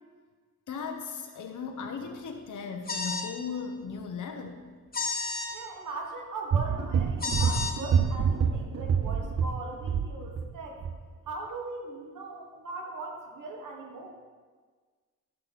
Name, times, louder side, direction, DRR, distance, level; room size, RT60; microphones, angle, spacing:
voice 1, 0.7-4.7, left 5 dB, 75° left, 3 dB, 1.0 m, -37 dB
sound 1, 2.9-3.3 4.9-5.5 7.2-7.7, left 4 dB, 30° left, 1.3 m, -31 dB
voice 2, 5.5-10.8 11.3-14.1, right 3 dB, 90° right, 1 dB, 1.4 m, -40 dB
sound 2, 6.5-10.5 10.8-11.0, right 6 dB, 50° right, 0.6 m, -27 dB
13.0 x 6.2 x 4.1 m, 1.5 s
wide cardioid pair, 105°, 31 cm